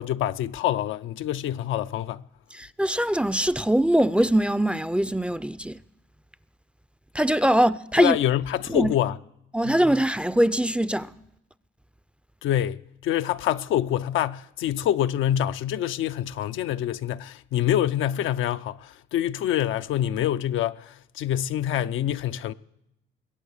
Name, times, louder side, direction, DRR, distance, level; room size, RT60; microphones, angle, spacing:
voice 1, 0.0-2.2 8.0-9.2 9.6-9.7 12.4-22.5, left 11 dB, 80° left, 0.5 m, -26 dB
voice 2, 2.5-5.8 7.1-8.2 8.7-8.9 9.5-11.1, right 1 dB, 5° right, 0.4 m, -22 dB
21.0 x 8.4 x 6.5 m
cardioid pair, 90°, 20 cm